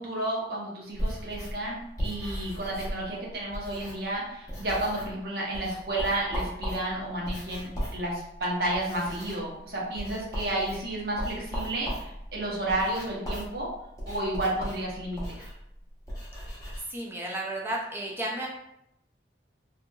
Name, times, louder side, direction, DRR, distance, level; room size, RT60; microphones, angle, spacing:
voice 1, 0.0-13.7 14.0-15.4, right 1 dB, 55° right, -4 dB, 0.8 m, -31 dB
sound 1, 1.0-4.2 4.5-5.2 5.5-16.8, equal, 20° left, 0.8 m, -37 dB
voice 2, 16.9-18.5, right 1 dB, 10° right, -2 dB, 0.4 m, -33 dB
2.8 x 2.5 x 2.2 m, 0.79 s
head